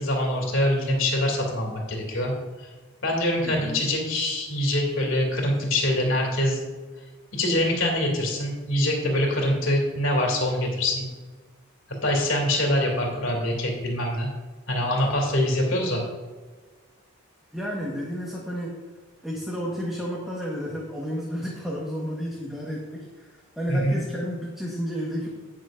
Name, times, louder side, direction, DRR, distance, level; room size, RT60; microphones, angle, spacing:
voice 1, 0.0-2.3 2.6-2.7 3.0-6.6 7.3-11.0 12.0-14.3 14.7-16.0 23.7-24.0, left 1 dB, 65° left, 0 dB, 2.6 m, -24 dB
voice 2, 3.4-3.9 17.5-18.8 19.2-25.3, equal, ahead, -4 dB, 1.3 m, -32 dB
17.5 x 6.6 x 2.6 m, 1.3 s
head